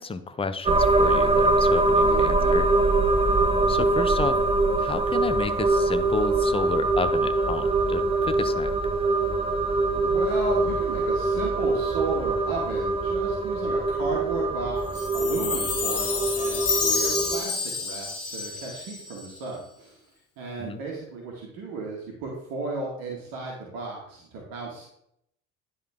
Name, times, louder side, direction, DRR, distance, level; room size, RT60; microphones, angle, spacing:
voice 1, 0.0-2.7 3.7-4.4 4.8-8.7 20.6-20.8, left 4 dB, 15° left, 10 dB, 0.6 m, -31 dB
sound 1, 0.6-17.4, right 2 dB, 15° right, 0.9 m, -23 dB
voice 2, 2.0-2.6 9.9-20.0 20.4-24.9, right 3 dB, 60° right, -1 dB, 1.8 m, -34 dB
Chime, 15.0-19.4, left 5 dB, 40° left, 1.8 m, -29 dB
10.0 x 4.0 x 3.6 m, 0.73 s
hypercardioid pair, 65°, 40 cm